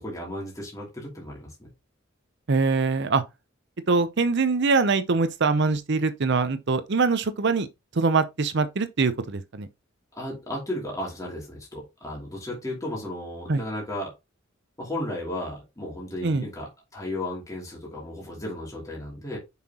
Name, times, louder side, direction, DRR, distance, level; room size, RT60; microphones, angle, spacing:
voice 1, 0.0-1.7 10.1-14.1 14.8-19.4, left 1 dB, 15° left, 2.8 m, -34 dB
voice 2, 2.5-3.2 3.9-7.7 7.9-9.7 13.5-13.6 16.2-16.5, right 4 dB, 60° right, 0.7 m, -23 dB
7.4 x 5.8 x 2.9 m
head